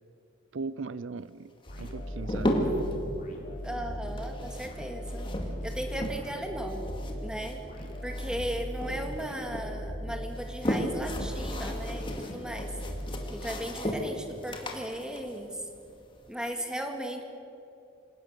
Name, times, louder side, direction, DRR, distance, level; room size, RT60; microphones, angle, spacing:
voice 1, 0.5-2.7, right 4 dB, 65° right, 16 dB, 0.5 m, -39 dB
sound 1, 1.6-3.0 4.1-6.4 6.7-8.5 8.8-9.7 10.2-16.3, equal, 25° left, 2.2 m, -34 dB
sound 2, 1.7-13.9, equal, 40° left, 3.6 m, -38 dB
voice 2, 3.6-5.3 5.6-6.9 7.2-7.6 8.0-12.7 13.3-15.6 16.3-17.2, right 1 dB, 5° right, 3 dB, 2.1 m, -36 dB
27.0 x 17.5 x 6.8 m, 2.6 s
head